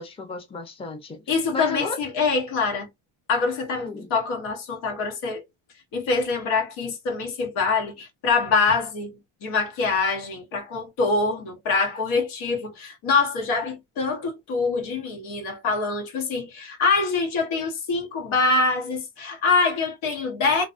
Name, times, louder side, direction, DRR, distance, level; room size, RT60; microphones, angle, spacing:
voice 1, 0.0-1.2 1.5-2.0 3.7-4.1, left 3 dB, 10° left, 0.5 m, -33 dB
voice 2, 1.3-2.9 3.3-5.4 5.9-20.6, left 4 dB, 80° left, 1.1 m, -25 dB
2.7 x 2.2 x 2.4 m
cardioid pair, 115°, 48 cm